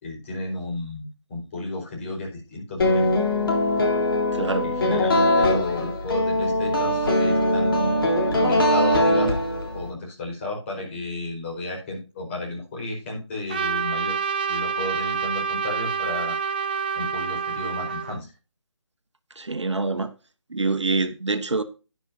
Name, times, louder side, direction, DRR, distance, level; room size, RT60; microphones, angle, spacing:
voice 1, 0.0-3.1 4.4-7.9 8.3-9.4 9.7-14.2 14.5-16.3 17.0-18.3, left 2 dB, 25° left, 4.5 m, -33 dB
sound 1, 2.8-9.9, left 1 dB, 50° left, 3.7 m, -21 dB
voice 2, 4.3-4.7 19.4-20.1 20.5-21.6, right 3 dB, 70° right, 1.2 m, -25 dB
Trumpet, 13.5-18.2, right 6 dB, 20° right, 0.6 m, -27 dB
11.5 x 10.0 x 2.7 m
figure-of-eight pair, 155°, 16 cm